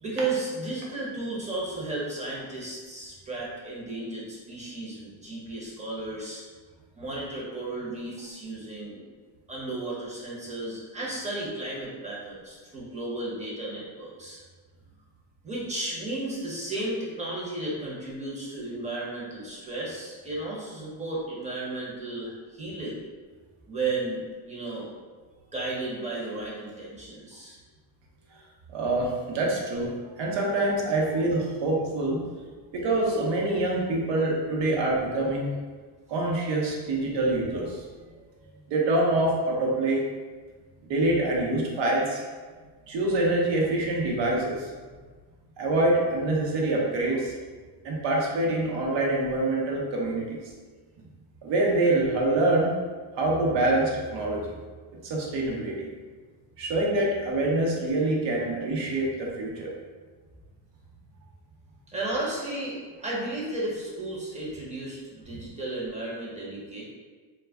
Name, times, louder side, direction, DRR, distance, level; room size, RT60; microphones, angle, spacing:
voice 1, 0.0-6.4 7.0-9.0 9.5-14.4 15.4-23.0 23.7-24.9 25.5-27.6 61.9-66.8, right 2 dB, 15° right, -5 dB, 0.8 m, -34 dB
voice 2, 28.7-29.9 30.2-32.2 32.7-35.5 36.1-37.8 38.7-40.0 40.8-42.2 42.9-44.7 45.6-47.3 47.8-50.4 51.4-52.7 53.1-54.5 55.0-55.9 56.6-59.7, right 2 dB, 65° right, -2 dB, 0.8 m, -25 dB
2.3 x 2.1 x 3.4 m, 1.4 s
cardioid pair, 115°, 47 cm